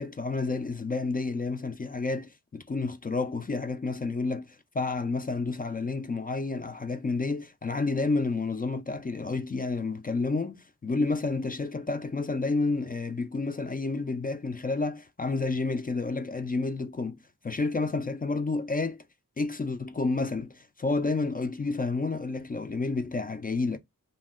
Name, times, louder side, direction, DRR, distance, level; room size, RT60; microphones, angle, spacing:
voice 1, 0.0-17.2 17.4-19.0 19.4-23.8, left 3 dB, 25° left, 0.3 m, -30 dB
2.7 x 2.0 x 3.5 m
cardioid pair, 50°, 35 cm